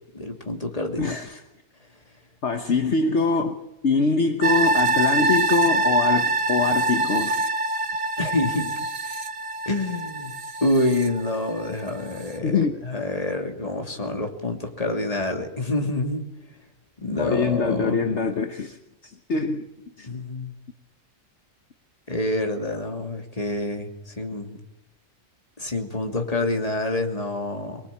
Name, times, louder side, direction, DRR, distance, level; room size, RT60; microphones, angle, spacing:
voice 1, 0.1-1.2 8.2-8.7 9.7-10.3 10.6-16.3 17.0-18.0 20.0-20.6 22.1-24.6 25.6-27.8, left 2 dB, 25° left, 2.9 m, -27 dB
voice 2, 1.0-1.4 2.4-3.6 3.8-7.5 12.4-12.8 17.2-19.6 20.0-20.1, left 4 dB, 60° left, 1.4 m, -24 dB
sound 1, 4.4-11.7 12.1-12.2, right 2 dB, 75° right, 1.9 m, -24 dB
24.0 x 21.0 x 8.5 m
omnidirectional pair, 1.4 m